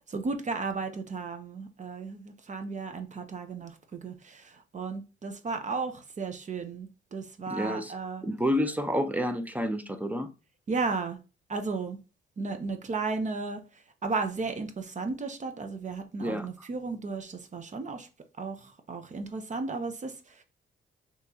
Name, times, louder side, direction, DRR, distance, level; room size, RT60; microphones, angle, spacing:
voice 1, 0.1-8.2 10.7-11.2 11.5-12.0 12.4-18.1 18.4-20.4, right 4 dB, 35° right, 0.8 m, -34 dB
voice 2, 7.5-7.9 8.2-10.3 16.2-16.5, equal, 10° right, 0.6 m, -29 dB
5.7 x 3.1 x 2.8 m
cardioid pair, 90°, 20 cm